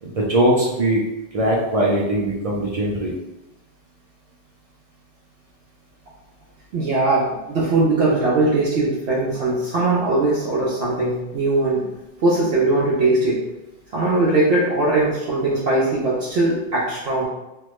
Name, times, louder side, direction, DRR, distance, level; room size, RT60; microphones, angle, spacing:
voice 1, 0.0-1.0 1.3-3.1, right 1 dB, 50° right, -4 dB, 0.4 m, -20 dB
voice 2, 6.7-11.9 12.2-13.4 13.9-17.3, right 2 dB, 70° right, -6 dB, 0.9 m, -20 dB
3.3 x 2.1 x 3.1 m, 0.98 s
omnidirectional pair, 1.2 m